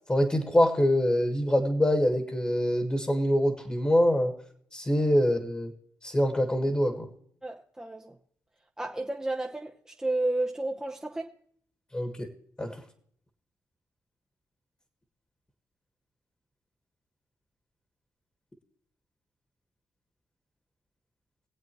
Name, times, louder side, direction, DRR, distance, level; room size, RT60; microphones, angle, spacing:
voice 1, 0.1-4.3 4.7-5.7 6.0-7.1 11.9-12.3 12.6-12.8, equal, 20° left, 1.5 m, -25 dB
voice 2, 7.4-8.2 8.8-11.3, right 2 dB, 10° right, 0.8 m, -32 dB
22.0 x 8.0 x 3.0 m
cardioid pair, 85°, 6 cm